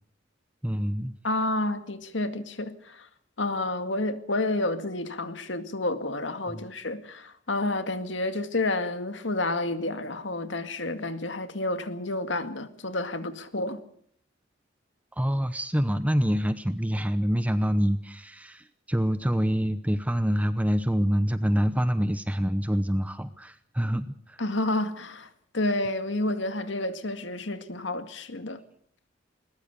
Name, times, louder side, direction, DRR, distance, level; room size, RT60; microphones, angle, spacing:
voice 1, 0.6-1.1 6.5-6.7 15.2-24.4, equal, 10° right, 0.8 m, -26 dB
voice 2, 1.2-3.1 3.4-13.8 24.4-28.6, left 2 dB, 70° left, 2.1 m, -30 dB
21.5 x 20.5 x 6.9 m
head